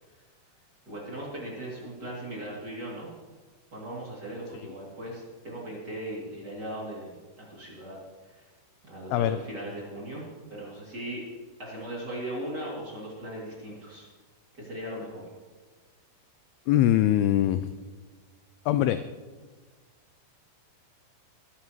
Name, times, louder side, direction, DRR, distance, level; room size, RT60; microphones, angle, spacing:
voice 1, 0.9-3.1 3.7-8.0 8.3-8.4 8.8-11.2 11.6-14.1 14.5-15.3, right 1 dB, 30° right, -5 dB, 2.8 m, -38 dB
voice 2, 16.7-17.7 18.7-19.0, left 12 dB, 85° left, 11 dB, 2.3 m, -22 dB
21.5 x 11.5 x 3.1 m, 1.4 s
omnidirectional pair, 5.0 m